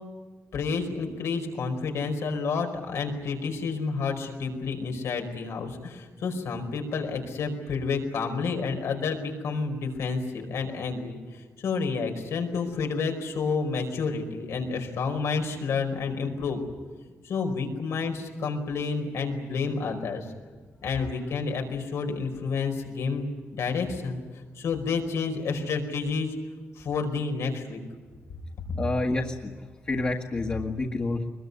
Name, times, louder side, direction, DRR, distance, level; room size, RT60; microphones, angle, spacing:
voice 1, 0.5-16.6 17.2-20.3 20.8-23.3 23.6-24.2 24.5-26.4 26.8-27.8, left 4 dB, 90° left, 4 dB, 5.0 m, -30 dB
voice 2, 28.7-29.5 29.8-31.3, left 2 dB, 30° left, 1 dB, 1.7 m, -28 dB
23.5 x 22.0 x 9.6 m, 1.4 s
wide cardioid pair, 155°, 5 cm